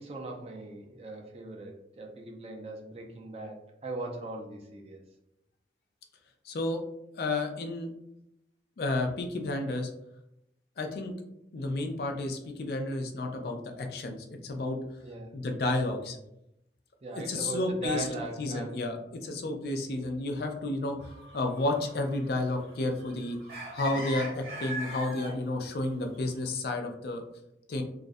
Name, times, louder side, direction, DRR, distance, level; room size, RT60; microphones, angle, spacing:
voice 1, 0.0-5.0 15.0-15.4 17.0-18.9 23.9-24.1, right 2 dB, 35° right, 1 dB, 0.4 m, -39 dB
voice 2, 6.4-6.8 7.1-7.9 8.8-9.9 10.8-11.1 11.5-14.8 15.3-16.2 17.3-18.1 18.4-23.4 23.7-27.2 27.7-27.8, left 2 dB, 60° left, 4 dB, 0.4 m, -31 dB
sound 1, 21.0-25.4 26.1-26.2, equal, 60° right, 1.0 m, -42 dB
2.4 x 2.0 x 2.5 m, 0.83 s
head